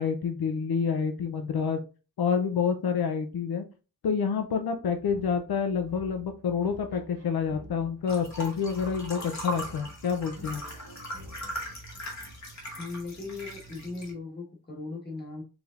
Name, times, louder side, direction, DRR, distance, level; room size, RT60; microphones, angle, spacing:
voice 1, 0.0-1.8 2.2-3.6 4.0-10.6, left 6 dB, 80° left, 6 dB, 0.6 m, -28 dB
sound 1, 4.9-12.4, left 1 dB, 40° right, 1.0 m, -49 dB
sound 2, 8.1-14.1, equal, 50° left, 1.4 m, -39 dB
voice 2, 12.8-15.4, left 3 dB, 25° left, 0 dB, 1.3 m, -38 dB
4.9 x 3.3 x 2.4 m, 0.33 s
wide cardioid pair, 160°, 37 cm